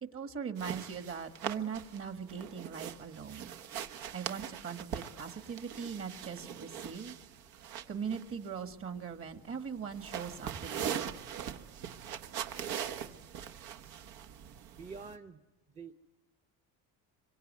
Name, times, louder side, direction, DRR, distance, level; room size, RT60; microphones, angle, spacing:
voice 1, 0.0-3.5 4.1-7.2 7.9-11.2, right 6 dB, 35° right, 8 dB, 1.8 m, -40 dB
sound 1, 0.6-15.2, right 9 dB, 70° right, 1.4 m, -42 dB
voice 2, 14.8-15.4 15.7-15.9, right 5 dB, 20° right, 7 dB, 0.9 m, -46 dB
25.5 x 23.5 x 9.5 m, 1.1 s
cardioid pair, 130°, 38 cm